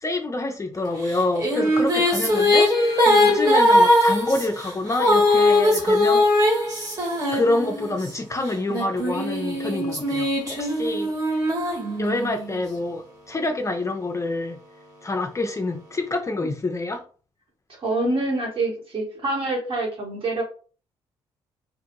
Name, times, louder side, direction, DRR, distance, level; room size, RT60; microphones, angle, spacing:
voice 1, 0.0-6.5 7.3-11.4 12.0-14.6 15.0-17.0, left 2 dB, 25° left, 0.5 m, -27 dB
sound 1, 1.1-8.1 8.7-12.4, left 1 dB, 30° right, 1.4 m, -20 dB
voice 2, 17.8-20.4, right 2 dB, 45° right, 1.5 m, -26 dB
2.5 x 2.4 x 2.9 m
hypercardioid pair, 55°, 12 cm